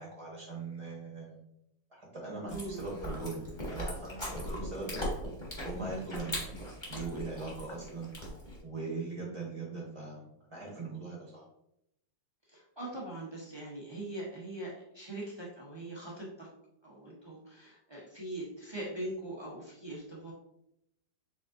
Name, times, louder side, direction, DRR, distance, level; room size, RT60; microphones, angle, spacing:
voice 1, 0.0-1.4 1.9-5.0 5.6-8.1 8.6-11.5, right 3 dB, 25° right, -4 dB, 0.8 m, -40 dB
Chewing mastication, 2.5-8.6, equal, 20° left, 1.2 m, -39 dB
voice 2, 2.5-2.8 12.5-16.5 16.8-20.3, right 1 dB, 40° right, -5 dB, 0.3 m, -41 dB
5.0 x 3.7 x 2.5 m, 0.79 s
omnidirectional pair, 1.9 m